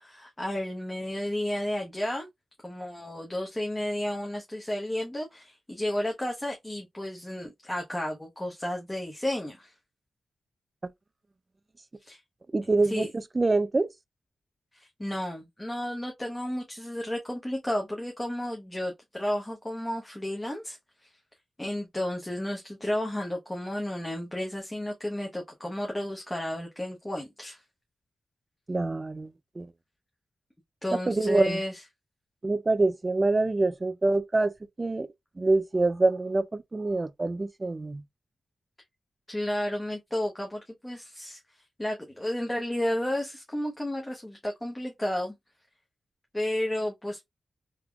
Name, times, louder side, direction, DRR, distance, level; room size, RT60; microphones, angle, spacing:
voice 1, 0.0-2.3 2.6-9.7 12.0-12.2 12.8-13.1 14.7-21.1 21.6-27.6 30.8-31.8 39.3-45.3 46.3-47.3, left 1 dB, 15° left, 0.8 m, -32 dB
voice 2, 12.5-13.1 13.4-13.9 28.7-29.3 29.6-29.7 31.1-31.6 32.4-34.5 34.8-35.1 35.4-38.0, right 2 dB, 30° right, 0.3 m, -25 dB
3.6 x 2.8 x 2.2 m
wide cardioid pair, 100°, 0 cm